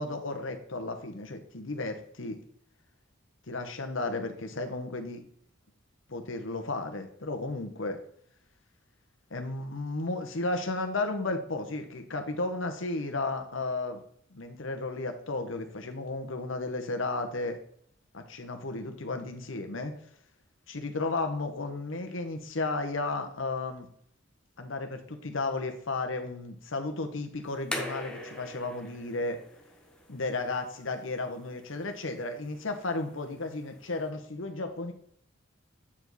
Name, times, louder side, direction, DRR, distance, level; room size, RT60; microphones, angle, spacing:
voice 1, 0.0-2.4 3.5-5.2 6.1-8.0 9.3-14.0 14.3-17.6 18.1-19.9 20.7-23.9 24.6-29.4 30.1-34.9, left 2 dB, 75° left, 6 dB, 1.1 m, -33 dB
sound 1, 27.4-34.1, left 1 dB, 5° left, 1.0 m, -43 dB
8.5 x 5.0 x 4.0 m, 0.63 s
head